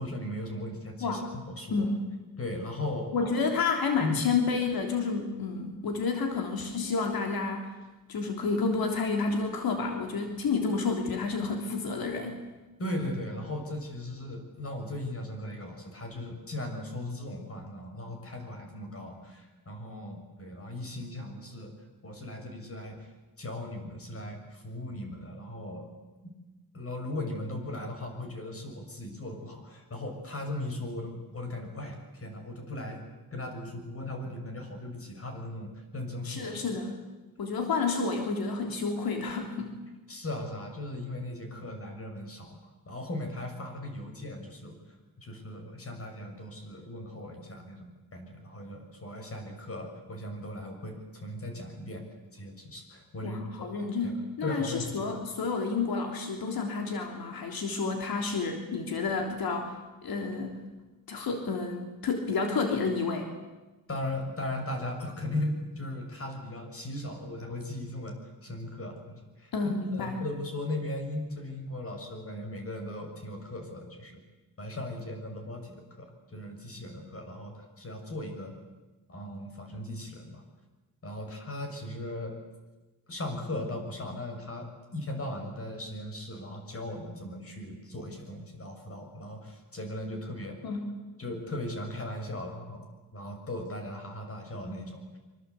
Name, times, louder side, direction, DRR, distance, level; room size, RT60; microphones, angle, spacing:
voice 1, 0.0-1.9 2.4-3.1 4.0-4.2 12.8-23.1 23.4-25.9 26.7-33.0 33.3-36.5 40.1-42.6 42.9-52.0 52.3-53.8 54.0-54.1 54.4-55.0 63.9-69.5 69.9-74.2 74.6-78.5 79.1-80.4 81.0-82.4 83.1-90.6 91.2-92.9 93.1-95.2, left 1 dB, 40° left, 4 dB, 6.6 m, -38 dB
voice 2, 1.0-1.3 1.7-2.0 3.1-7.7 8.1-12.4 36.2-37.0 37.4-39.7 53.2-59.7 60.0-60.6 61.1-63.3 69.5-70.2 90.6-90.9, left 4 dB, 90° left, 4 dB, 3.4 m, -30 dB
25.0 x 25.0 x 8.4 m, 1.1 s
wide cardioid pair, 125°, 35 cm